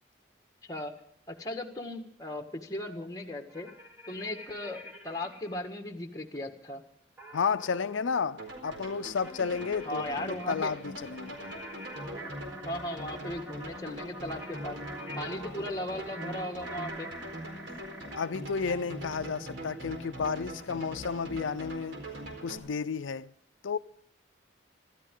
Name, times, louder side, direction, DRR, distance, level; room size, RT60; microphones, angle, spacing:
voice 1, 0.6-0.9 1.3-3.7 4.1-6.8 9.8-10.7 12.6-14.8 15.2-17.1, left 1 dB, 20° left, 1.7 m, -37 dB
sound 1, 3.5-5.6 7.2-18.3, right 1 dB, 10° right, 3.4 m, -46 dB
voice 2, 7.3-10.0 10.5-11.4 18.2-22.0 22.4-23.3 23.6-23.8, left 5 dB, 90° left, 0.5 m, -32 dB
sound 2, 8.4-22.6, equal, 80° right, 4.4 m, -42 dB
25.5 x 13.0 x 3.8 m
head